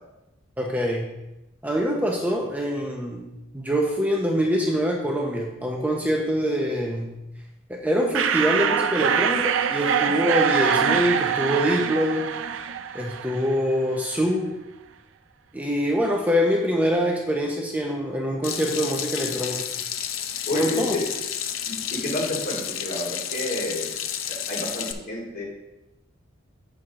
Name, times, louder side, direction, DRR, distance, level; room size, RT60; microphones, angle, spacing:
voice 1, 0.6-1.1 1.6-3.3 3.5-7.2 7.7-12.3 12.9-14.5 15.5-19.7 20.5-21.0, equal, 10° right, 0 dB, 0.8 m, -24 dB
sound 1, 8.1-13.7, right 7 dB, 70° right, 0.5 m, -24 dB
Water tap faucet / Sink (filling or washing), 18.4-24.9, left 9 dB, 75° left, 0.6 m, -31 dB
voice 2, 20.5-21.0 21.7-23.9 24.3-25.4, left 1 dB, 50° left, -5 dB, 2.7 m, -30 dB
8.2 x 6.1 x 3.7 m, 0.95 s
head